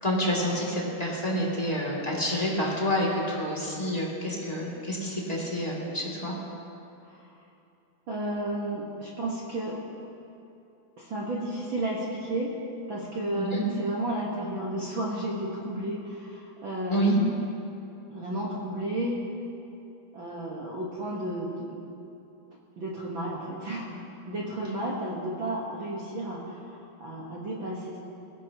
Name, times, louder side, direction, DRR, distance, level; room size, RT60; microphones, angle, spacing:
voice 1, 0.0-6.3 13.3-13.6 16.9-17.1, equal, 15° left, -5 dB, 1.7 m, -28 dB
voice 2, 8.1-9.8 11.0-12.5 12.9-17.3 18.1-19.2 20.1-21.8 22.8-24.0 24.3-28.0, right 1 dB, 65° right, -4 dB, 1.2 m, -32 dB
21.0 x 16.5 x 2.9 m, 2.8 s
omnidirectional pair, 4.4 m